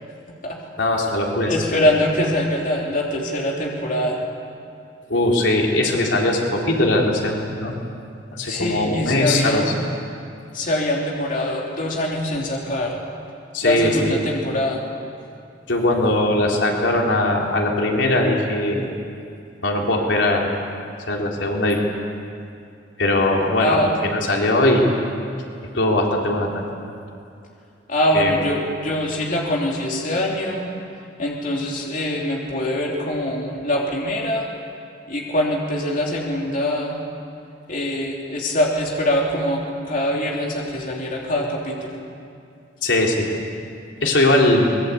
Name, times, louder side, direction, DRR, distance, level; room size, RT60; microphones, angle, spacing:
voice 1, 0.8-1.6 5.1-7.7 8.3-9.6 13.5-14.2 15.7-18.8 19.6-20.5 21.1-21.8 23.0-24.9 25.7-26.7 28.1-28.4 42.8-43.3 44.0-44.8, left 1 dB, 80° left, -1 dB, 3.6 m, -20 dB
voice 2, 1.5-4.2 8.4-9.8 10.5-13.0 13.6-14.8 23.6-23.9 27.9-30.7 31.2-34.5 35.1-37.0 37.7-39.6 39.9-42.0, left 1 dB, 45° left, -2 dB, 3.2 m, -23 dB
24.5 x 21.0 x 8.5 m, 2.5 s
head